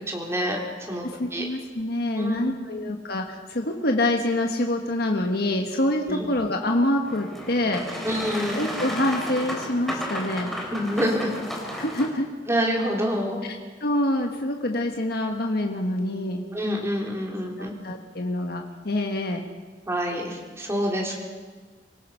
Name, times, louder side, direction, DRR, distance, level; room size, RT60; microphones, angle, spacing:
voice 1, 0.1-1.1 1.3-1.5 2.2-2.5 6.1-6.3 8.0-8.7 10.7-11.3 12.5-13.4 16.5-17.7 19.9-21.2, equal, 15° right, -1 dB, 3.6 m, -27 dB
voice 2, 1.0-8.1 8.5-10.5 11.8-12.3 13.8-16.4 17.6-19.4, left 1 dB, 60° left, 3 dB, 1.5 m, -26 dB
Boat Water vehicle, 7.0-12.1, equal, ahead, 3.7 m, -33 dB
25.5 x 18.5 x 5.7 m, 1.5 s
head